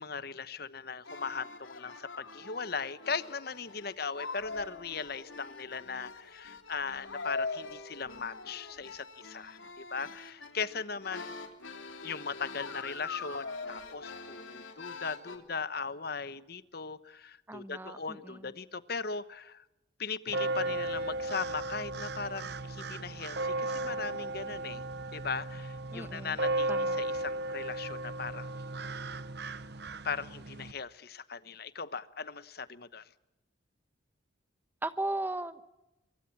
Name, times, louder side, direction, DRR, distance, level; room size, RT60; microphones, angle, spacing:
voice 1, 0.0-11.3 12.0-19.6 20.0-24.8 25.1-28.5 30.0-33.1, left 5 dB, 50° left, 15 dB, 1.0 m, -38 dB
sound 1, 1.0-15.4, left 3 dB, 75° left, 3.3 m, -43 dB
voice 2, 17.5-18.5 25.9-26.4 26.7-27.0 34.8-35.7, right 2 dB, 10° right, 12 dB, 1.1 m, -37 dB
sound 2, 20.3-30.7, right 2 dB, 55° right, 0.9 m, -35 dB
24.0 x 24.0 x 7.3 m, 0.94 s
head